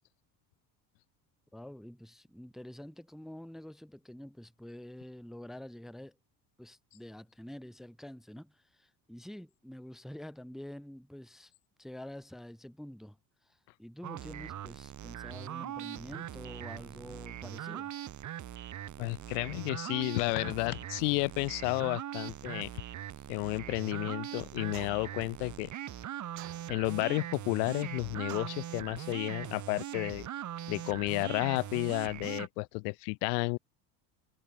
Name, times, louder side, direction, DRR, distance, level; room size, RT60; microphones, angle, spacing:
voice 1, 1.5-6.2 6.6-11.5 11.8-13.2 13.4-18.0, left 1 dB, ahead, 0.5 m, -47 dB
sound 1, 14.0-32.5, right 11 dB, 35° right, 1.2 m, -41 dB
voice 2, 19.0-22.7 23.3-25.7 26.7-30.3 30.7-33.6, left 35 dB, 75° left, 0.5 m, -32 dB
sound 2, 24.7-25.2 26.4-27.0 28.3-28.7, right 31 dB, 80° right, 0.7 m, -48 dB
supercardioid pair, 90°, 49 cm